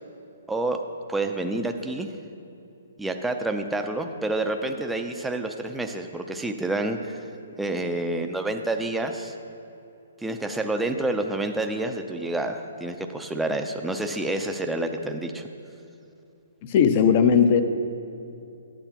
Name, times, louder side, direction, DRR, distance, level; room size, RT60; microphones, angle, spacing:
voice 1, 0.5-0.8 1.1-2.1 3.0-7.2 7.6-9.3 10.2-15.4, right 2 dB, 5° right, 5 dB, 0.5 m, -28 dB
voice 2, 16.6-17.6, left 7 dB, 40° left, 9 dB, 0.6 m, -18 dB
11.5 x 9.0 x 2.9 m, 2.8 s
hypercardioid pair, 145°, 0 cm